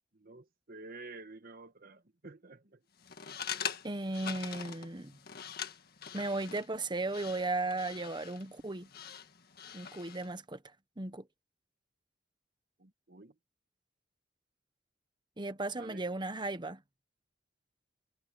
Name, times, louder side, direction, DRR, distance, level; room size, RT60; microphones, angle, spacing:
voice 1, 0.1-2.8 12.8-13.4 15.8-16.0, right 3 dB, 55° right, 1.6 m, -50 dB
sound 1, 3.0-10.3, left 8 dB, 55° left, 1.8 m, -44 dB
voice 2, 3.8-5.2 6.1-8.9 9.7-10.6 11.0-11.3 15.4-16.8, right 2 dB, 25° right, 1.1 m, -36 dB
head